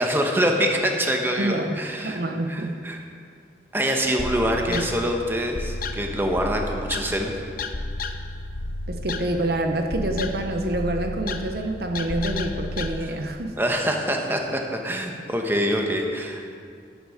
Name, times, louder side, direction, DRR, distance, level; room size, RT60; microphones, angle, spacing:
voice 1, 0.0-2.2 2.5-3.0 3.7-7.3 13.6-16.5, equal, 10° right, 2 dB, 1.1 m, -25 dB
voice 2, 1.4-2.8 4.7-4.9 8.9-13.6, right 1 dB, 55° right, 4 dB, 0.8 m, -27 dB
sound 1, 4.2-12.9, left 2 dB, 50° left, 0.7 m, -32 dB
13.0 x 11.5 x 5.0 m, 2.3 s
head